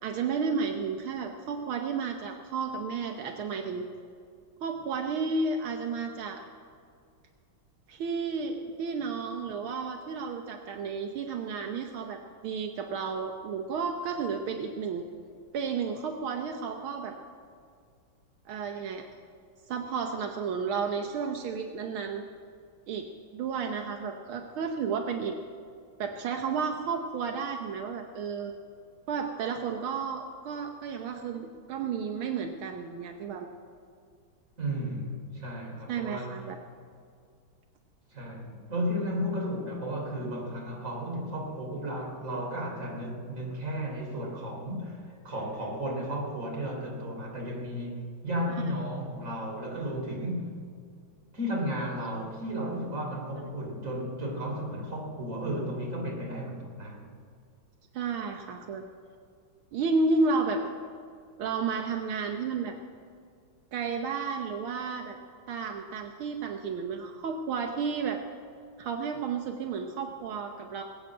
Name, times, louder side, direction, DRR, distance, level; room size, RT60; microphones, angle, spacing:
voice 1, 0.0-3.9 4.6-6.4 7.9-15.0 15.5-17.2 18.5-19.1 19.7-22.2 22.9-23.1 23.3-25.4 26.0-28.5 29.1-33.5 35.9-36.6 48.5-48.6 57.9-58.8 59.7-60.6 61.4-62.8 63.7-65.2 65.5-68.2 68.8-70.8, right 5 dB, 80° right, 4 dB, 1.8 m, -32 dB
voice 2, 34.6-36.4 38.1-50.5 51.3-57.0, equal, 40° right, -1 dB, 3.7 m, -34 dB
21.0 x 8.9 x 7.7 m, 2.2 s
omnidirectional pair, 2.3 m